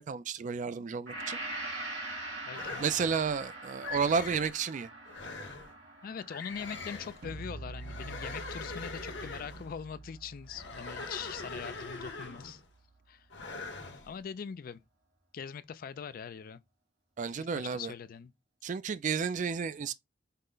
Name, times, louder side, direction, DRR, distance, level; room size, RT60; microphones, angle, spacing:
voice 1, 0.0-1.4 2.8-4.9 17.2-17.9 18.6-19.9, right 6 dB, 45° right, 0.4 m, -32 dB
Gong, 1.1-9.1, right 2 dB, 75° right, 2.6 m, -43 dB
voice 2, 2.4-2.8 6.0-12.6 13.1-13.3 14.1-14.8 15.3-16.6 17.4-18.3, left 7 dB, 50° left, 0.3 m, -42 dB
sound 1, 2.5-3.3 3.8-4.5 5.1-5.7 6.3-7.2 7.8-9.7 10.5-12.6 13.3-14.1, left 3 dB, 70° left, 1.1 m, -42 dB
sound 2, 7.2-13.2, right 3 dB, 60° right, 0.8 m, -48 dB
5.5 x 2.1 x 3.8 m
head